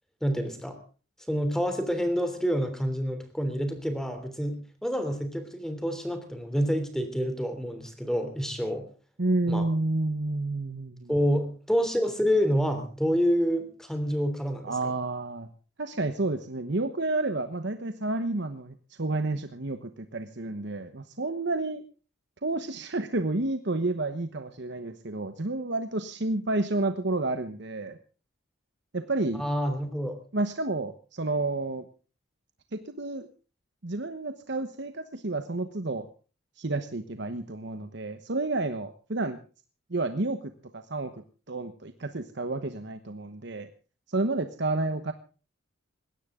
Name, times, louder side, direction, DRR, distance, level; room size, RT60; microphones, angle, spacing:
voice 1, 0.2-0.8 1.3-8.8 9.5-9.7 11.1-14.7 29.4-30.2, equal, ahead, 8 dB, 3.2 m, -28 dB
voice 2, 9.2-11.1 14.6-15.5 15.8-21.8 22.4-28.0 28.9-29.4 30.3-31.8 32.7-33.3 33.8-36.1 36.6-39.4 39.9-41.2 41.5-43.7 44.1-45.1, right 2 dB, 55° right, 9 dB, 1.1 m, -30 dB
20.5 x 17.0 x 3.8 m, 0.37 s
head